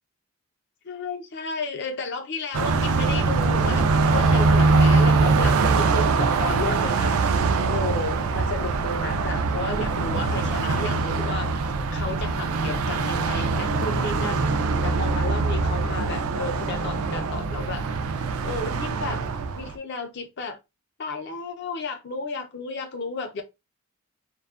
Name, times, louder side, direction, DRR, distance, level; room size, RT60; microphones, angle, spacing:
voice 1, 0.8-7.2 7.7-11.5 11.9-14.4 14.8-17.8 18.4-19.2 19.5-20.6 21.0-23.4, left 3 dB, 50° left, 0.5 m, -33 dB
Car passing by, 2.5-19.7, right 4 dB, 80° right, 0.4 m, -23 dB
2.5 x 2.3 x 2.3 m
head